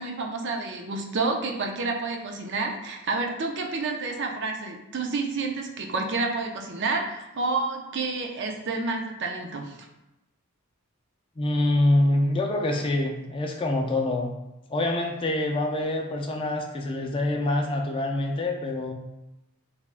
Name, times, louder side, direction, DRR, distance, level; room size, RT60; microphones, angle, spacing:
voice 1, 0.0-9.8, right 3 dB, 55° right, 2 dB, 0.5 m, -29 dB
voice 2, 11.4-14.3 14.7-18.9, left 1 dB, 25° left, 2 dB, 0.3 m, -25 dB
3.4 x 3.3 x 2.4 m, 0.94 s
head